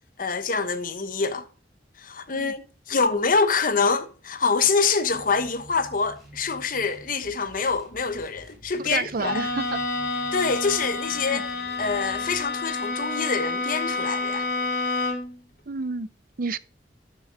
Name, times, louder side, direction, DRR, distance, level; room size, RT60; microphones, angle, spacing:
voice 1, 0.2-1.4 2.0-9.4 10.3-11.5 11.8-14.5, left 4 dB, 50° left, 1.1 m, -25 dB
sound 1, 5.0-12.5, equal, ahead, 4.5 m, -49 dB
voice 2, 8.8-9.8 11.3-11.4 15.7-16.1 16.4-16.6, right 4 dB, 55° right, 0.6 m, -29 dB
Bowed string instrument, 9.2-15.4, left 3 dB, 70° left, 2.4 m, -29 dB
13.0 x 6.8 x 3.7 m
head